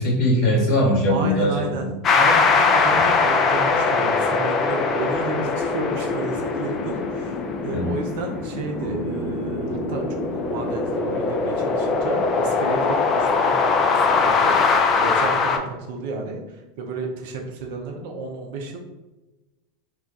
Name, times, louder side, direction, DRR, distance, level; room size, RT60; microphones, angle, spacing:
voice 1, 0.0-1.9 2.9-3.0 7.7-7.9, left 1 dB, 50° left, -3 dB, 1.0 m, -21 dB
voice 2, 1.1-1.9 2.1-10.2 10.5-13.6 13.9-18.8, right 3 dB, 60° right, 2 dB, 0.5 m, -32 dB
sound 1, 2.0-15.6, left 4 dB, 35° left, 0.4 m, -21 dB
Bass guitar, 8.8-13.0, right 3 dB, 90° right, 0.8 m, -36 dB
2.4 x 2.2 x 3.8 m, 1.1 s
figure-of-eight pair, 85°, 0 cm